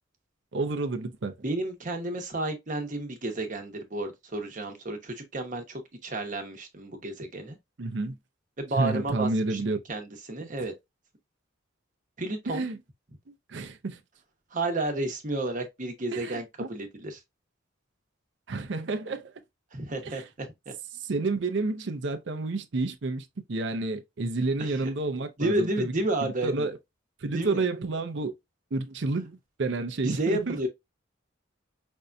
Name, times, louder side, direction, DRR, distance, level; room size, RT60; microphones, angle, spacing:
voice 1, 0.5-1.3 7.8-8.2 8.8-9.8 12.5-12.8 13.3-14.0 16.1-16.7 18.5-19.3 20.0-20.3 21.0-25.9 26.2-26.8 27.2-28.3 28.7-30.6, right 3 dB, 65° right, 0.6 m, -30 dB
voice 2, 1.4-7.6 8.6-10.7 12.2-12.7 14.5-17.2 19.7-20.7 24.6-24.9 25.4-26.7 27.3-27.6 30.0-30.7, right 2 dB, 40° right, 1.0 m, -31 dB
5.3 x 2.6 x 2.3 m
head